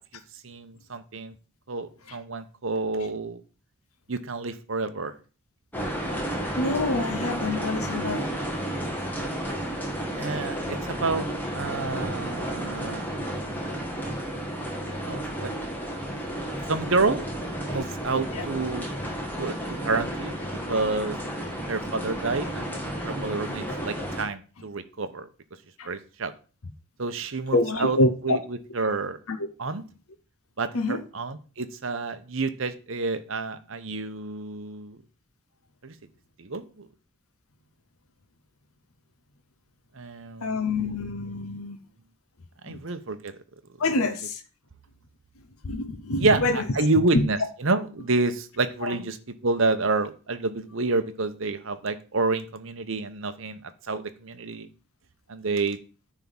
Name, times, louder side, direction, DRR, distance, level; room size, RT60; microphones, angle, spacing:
voice 1, 0.4-1.3 1.7-3.4 4.1-5.1 10.2-13.1 15.1-15.6 16.7-17.2 17.7-18.9 19.4-20.4 20.7-21.2 21.7-25.3 25.9-26.3 27.0-28.0 28.2-29.2 29.6-29.8 30.6-35.0 35.8-35.9 36.4-36.9 39.9-40.6 42.6-43.4 46.2-49.2 49.4-54.7 55.3-55.8, right 3 dB, 60° right, 0.9 m, -29 dB
sound 1, 5.7-24.2, right 1 dB, 10° left, 1.6 m, -32 dB
voice 2, 6.6-8.4 18.3-18.5 25.8-25.9 27.5-28.4 29.3-29.4 30.7-31.0 40.4-41.8 42.7-42.8 43.8-44.4 45.6-46.6 47.1-47.3 48.8-49.0, left 2 dB, 80° left, 0.8 m, -26 dB
9.9 x 3.6 x 7.1 m
head